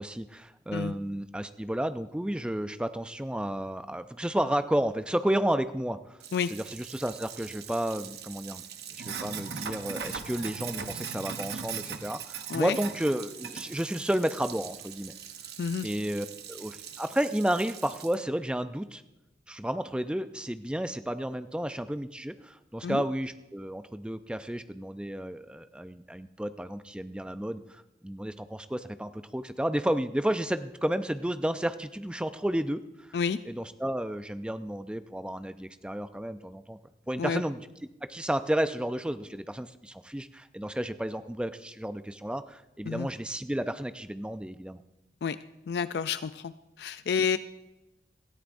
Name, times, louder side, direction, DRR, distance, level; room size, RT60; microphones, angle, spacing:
voice 1, 0.0-6.0 6.5-8.6 9.1-15.1 15.8-19.0 19.5-32.8 33.5-36.8 37.1-37.6 38.1-44.8, right 1 dB, 5° right, 11 dB, 0.4 m, -32 dB
Sink (filling or washing), 6.2-18.1, right 7 dB, 65° right, 0.9 m, -40 dB
voice 2, 15.6-15.9 22.8-23.0 33.1-33.4 37.2-37.4 42.9-43.1 45.2-45.4 45.7-46.5 46.8-47.4, left 6 dB, 70° left, 13 dB, 0.4 m, -29 dB
18.0 x 13.5 x 2.6 m, 0.95 s
head